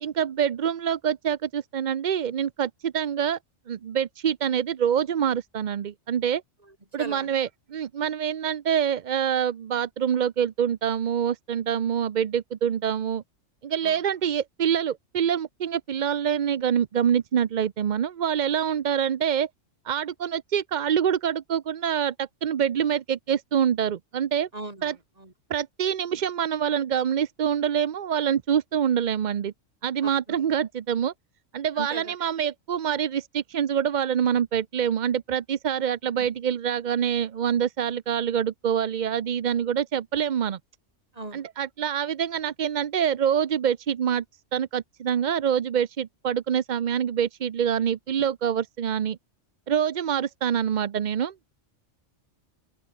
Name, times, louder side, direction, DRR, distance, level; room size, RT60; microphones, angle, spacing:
voice 1, 0.0-3.4 3.7-6.4 6.9-13.2 13.6-19.5 19.8-24.5 24.8-24.9 25.5-29.5 29.8-31.1 31.5-40.6 41.3-44.2 44.5-49.2 49.7-51.5, right 8 dB, 50° right, 0.6 m, -26 dB
voice 2, 6.6-7.3 13.8-14.0 24.5-25.3 30.0-30.4 31.7-32.1 36.2-36.3 41.1-41.4, right 2 dB, 30° right, 3.0 m, -39 dB
open air
omnidirectional pair, 1.3 m